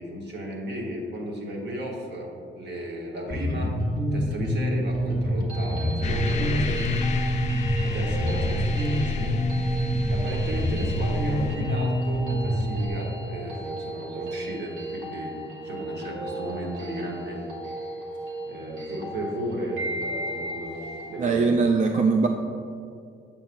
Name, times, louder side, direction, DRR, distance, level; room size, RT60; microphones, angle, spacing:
voice 1, 0.0-3.7 4.1-17.5 18.5-21.6, right 1 dB, 60° right, -1 dB, 1.2 m, -35 dB
Bass guitar, 3.3-12.9, equal, 20° right, 1.1 m, -26 dB
sound 1, 5.3-21.2, right 1 dB, 85° right, 1.1 m, -36 dB
sound 2, 6.0-11.6, left 4 dB, 35° left, 0.4 m, -32 dB
voice 2, 21.2-22.3, right 4 dB, 40° right, 4 dB, 0.4 m, -21 dB
7.1 x 5.7 x 2.6 m, 2.4 s
cardioid pair, 90°, 20 cm